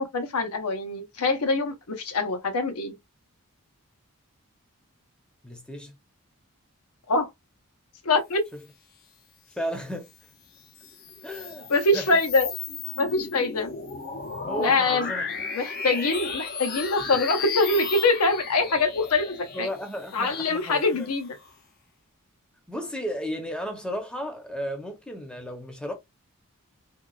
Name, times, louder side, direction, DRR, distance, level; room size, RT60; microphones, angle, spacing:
voice 1, 0.0-2.9 7.1-7.3 8.0-8.4 11.7-12.5 13.0-13.7 14.6-15.1 15.5-19.7 20.1-21.4, left 3 dB, 85° left, 0.7 m, -24 dB
voice 2, 5.4-5.9 9.5-10.1 11.2-11.7 11.9-12.2 14.5-15.2 19.5-21.1 22.7-25.9, equal, 5° left, 0.6 m, -34 dB
sound 1, 10.6-21.5, left 5 dB, 45° left, 0.5 m, -35 dB
3.7 x 2.3 x 2.2 m
head